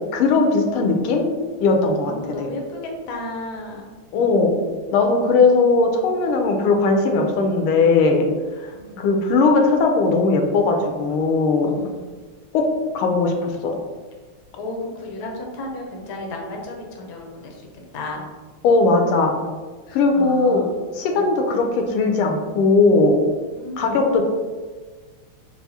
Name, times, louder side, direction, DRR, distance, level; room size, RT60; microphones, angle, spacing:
voice 1, 0.1-1.2 1.6-2.5 4.1-4.5 4.9-8.3 8.6-11.8 12.5-12.7 12.9-13.7 18.6-19.4 19.9-20.6 20.9-23.2 23.8-24.2, left 3 dB, 85° left, 3 dB, 1.4 m, -18 dB
voice 2, 2.0-4.0 5.7-5.9 8.7-9.1 11.7-12.2 14.6-17.7 17.9-18.2 19.9-20.8 21.0-21.3 23.5-24.0, left 1 dB, 65° left, 0 dB, 1.0 m, -34 dB
4.6 x 2.4 x 2.7 m, 1.4 s
omnidirectional pair, 2.4 m